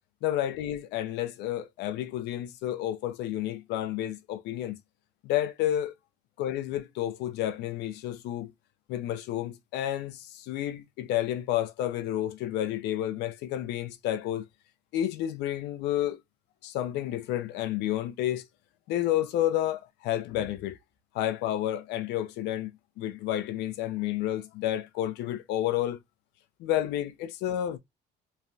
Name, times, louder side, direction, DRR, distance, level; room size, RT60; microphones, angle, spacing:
voice 1, 0.2-4.8 5.2-5.9 6.4-8.5 8.9-14.5 14.9-16.2 16.6-18.5 18.9-20.8 21.1-26.0 26.6-27.8, left 12 dB, 85° left, 0.5 m, -30 dB
3.1 x 2.3 x 2.6 m
cardioid pair, 110°, 17 cm